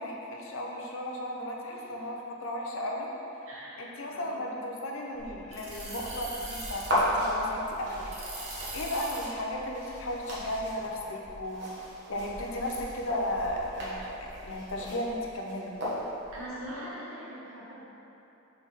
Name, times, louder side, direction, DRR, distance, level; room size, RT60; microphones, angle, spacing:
voice 1, 0.0-3.1 3.8-8.1 8.5-11.8 12.1-15.8, left 1 dB, 70° left, -1 dB, 0.8 m, -35 dB
voice 2, 3.5-4.4 16.3-17.8, equal, 70° right, -7 dB, 1.3 m, -42 dB
sound 1, 5.2-15.3 15.7-16.7, right 1 dB, 30° right, 1.0 m, -44 dB
sound 2, 6.8-16.4, equal, 55° right, 1.5 m, -35 dB
6.1 x 4.4 x 4.1 m, 3.0 s
head